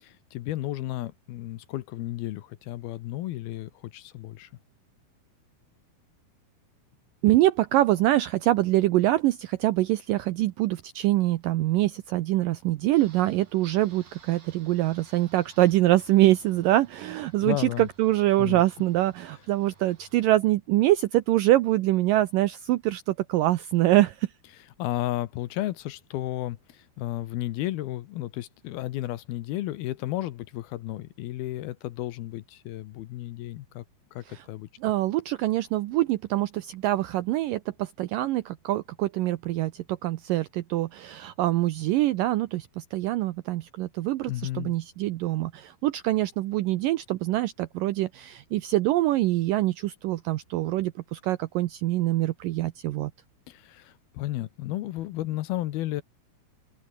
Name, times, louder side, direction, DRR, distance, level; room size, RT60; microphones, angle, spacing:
voice 1, 0.0-4.5 17.4-17.9 18.4-18.6 24.8-33.8 34.1-34.7 44.3-44.8 53.5-56.0, left 15 dB, 75° left, 2.7 m, -33 dB
voice 2, 7.2-24.3 34.3-34.4 34.8-53.1, right 16 dB, 80° right, 2.0 m, -24 dB
sound 1, 12.9-20.3, right 5 dB, 55° right, 7.1 m, -57 dB
open air
omnidirectional pair, 4.8 m